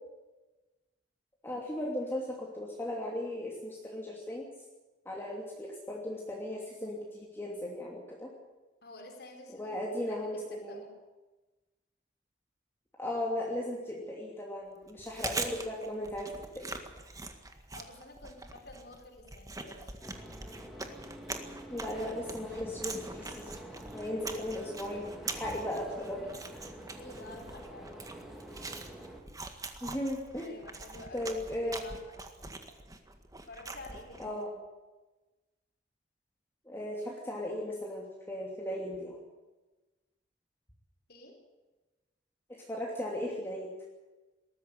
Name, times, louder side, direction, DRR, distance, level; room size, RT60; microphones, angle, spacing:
voice 1, 1.4-4.5 5.0-8.3 9.6-10.8 13.0-16.7 21.7-23.5 23.9-26.3 29.8-30.5 31.1-31.9 34.2-34.6 36.7-39.2 42.5-43.7, left 1 dB, 15° left, -2 dB, 2.9 m, -37 dB
voice 2, 8.8-10.9 17.7-19.9 27.0-28.0 30.4-32.5 33.5-34.4 41.1-41.4, left 2 dB, 60° left, 2 dB, 4.5 m, -50 dB
Chewing mastication, 14.9-34.4, right 3 dB, 20° right, 1.8 m, -43 dB
sound 1, 20.0-29.2, equal, ahead, 3.1 m, -47 dB
20.5 x 14.0 x 9.8 m, 1.2 s
head